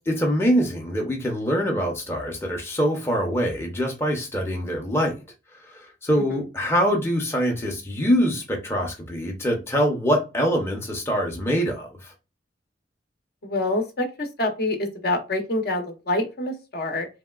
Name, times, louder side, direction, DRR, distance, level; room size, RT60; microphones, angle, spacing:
voice 1, 0.1-5.2 5.6-12.1, equal, 15° left, 0.6 m, -24 dB
voice 2, 13.4-17.1, left 2 dB, 55° left, 0.7 m, -26 dB
3.1 x 2.8 x 2.3 m
head